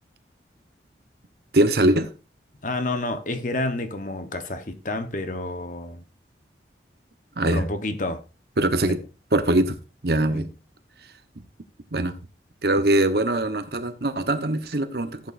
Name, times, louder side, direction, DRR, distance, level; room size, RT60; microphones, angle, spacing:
voice 1, 1.5-2.1 7.4-7.6 8.6-9.0 9.3-9.8 10.0-10.5 11.9-12.1 12.6-15.3, right 1 dB, 60° right, 1.1 m, -22 dB
voice 2, 2.6-6.0 7.4-8.2 10.3-10.4, left 2 dB, 45° left, 1.1 m, -29 dB
14.5 x 8.5 x 2.6 m
head